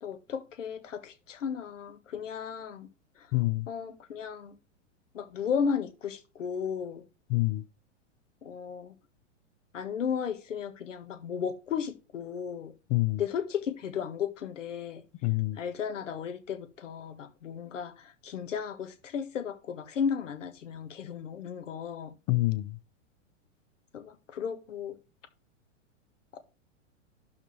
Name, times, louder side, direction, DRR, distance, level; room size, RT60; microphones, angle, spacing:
voice 1, 0.0-2.9 3.2-3.3 3.7-4.6 5.1-7.0 8.4-8.9 9.7-12.7 13.2-15.0 15.5-22.1 23.9-25.0, left 7 dB, 75° left, 1.6 m, -34 dB
voice 2, 3.3-3.7 7.3-7.6 12.9-13.2 15.2-15.6 22.3-22.8, left 21 dB, 35° left, 0.7 m, -26 dB
11.5 x 4.5 x 3.3 m
hypercardioid pair, 105°, 38 cm